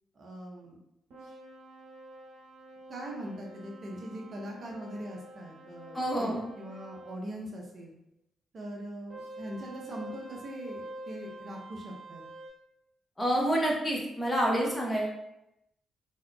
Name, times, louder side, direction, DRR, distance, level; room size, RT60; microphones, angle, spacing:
voice 1, 0.1-0.8 2.9-7.9 8.5-12.2, right 1 dB, 55° right, -1 dB, 0.7 m, -41 dB
sound 1, 1.1-7.2 9.1-12.5, right 1 dB, 75° right, 0.9 m, -47 dB
voice 2, 5.9-6.4 13.2-15.1, right 1 dB, 15° left, -2 dB, 1.0 m, -28 dB
3.5 x 2.7 x 2.3 m, 0.85 s
hypercardioid pair, 45°, 0 cm